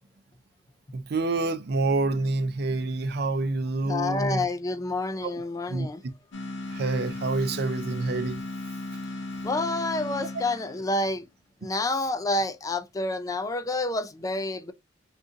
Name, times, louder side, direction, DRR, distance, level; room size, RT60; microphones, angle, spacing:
voice 1, 0.9-4.4 5.2-5.3 5.7-5.9 6.7-8.4 8.9-9.0, right 3 dB, 60° right, 0.5 m, -27 dB
voice 2, 3.9-6.0 9.4-11.3 11.6-14.7, left 2 dB, 20° left, 0.3 m, -28 dB
sound 1, 6.3-11.0, left 2 dB, 85° left, 0.7 m, -36 dB
2.6 x 2.5 x 3.6 m
head